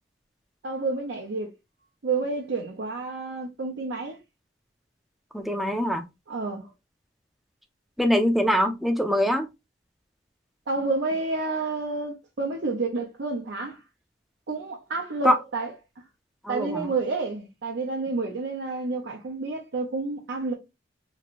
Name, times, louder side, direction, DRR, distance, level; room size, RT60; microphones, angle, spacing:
voice 1, 0.6-1.5 2.0-4.2 6.3-6.7 10.7-13.8 14.5-15.7 16.5-20.5, right 3 dB, 75° right, 0.6 m, -29 dB
voice 2, 5.3-6.0 8.0-9.5 15.2-15.4 16.4-16.9, equal, ahead, 0.4 m, -23 dB
3.0 x 2.6 x 2.8 m
head